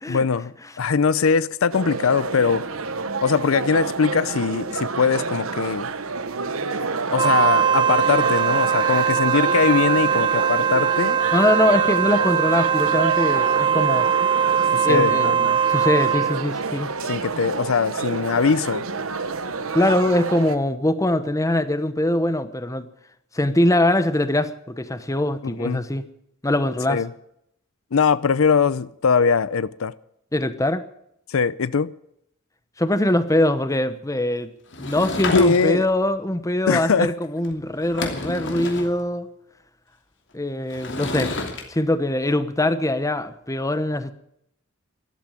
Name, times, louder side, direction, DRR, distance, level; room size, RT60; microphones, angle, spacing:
voice 1, 0.1-2.6 3.2-5.9 7.1-11.2 14.7-15.6 17.1-18.8 25.4-25.8 26.9-27.1 27.9-29.9 31.3-31.9 35.3-35.9 36.7-37.1, left 5 dB, 80° left, 0.6 m, -21 dB
sound 1, 1.7-20.6, right 4 dB, 90° right, 1.2 m, -28 dB
Wind instrument woodwind instrument, 7.1-16.4, right 8 dB, 20° right, 0.7 m, -21 dB
voice 2, 11.3-14.1 14.8-15.4 15.7-16.9 19.7-22.9 23.3-26.0 26.4-27.0 30.3-30.8 32.8-34.5 34.8-39.3 40.3-41.3 41.7-44.1, left 1 dB, 15° left, 1.0 m, -22 dB
Sliding door / Wood, 34.7-35.9 37.4-37.5 37.8-38.9 40.7-41.6, left 3 dB, 60° left, 2.9 m, -30 dB
13.0 x 12.0 x 9.1 m
head